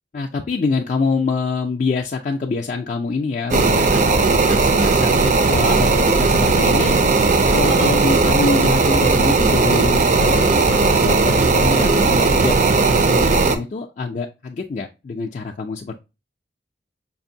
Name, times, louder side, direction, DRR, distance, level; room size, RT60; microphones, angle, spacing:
voice 1, 0.1-6.9 7.5-15.9, left 4 dB, 40° left, 0 dB, 0.3 m, -25 dB
sound 1, 3.5-13.6, right 3 dB, 40° right, 0.4 m, -16 dB
5.3 x 2.5 x 2.6 m, 0.27 s
head